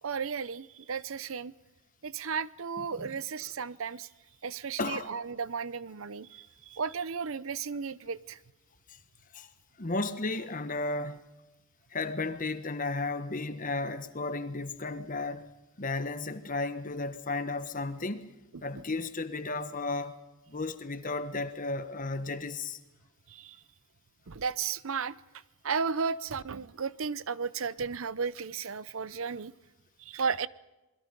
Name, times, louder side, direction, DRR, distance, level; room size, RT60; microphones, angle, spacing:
voice 1, 0.0-1.5 2.0-4.1 4.4-8.4 18.7-18.8 23.3-23.6 24.3-25.2 25.6-29.5 30.0-30.5, right 5 dB, 75° right, 0.7 m, -34 dB
voice 2, 4.8-5.1 8.9-9.0 9.3-9.5 9.8-11.2 11.9-15.5 15.8-18.3 18.6-20.2 20.5-22.8, left 3 dB, 40° left, 1.3 m, -34 dB
28.0 x 21.5 x 5.3 m
head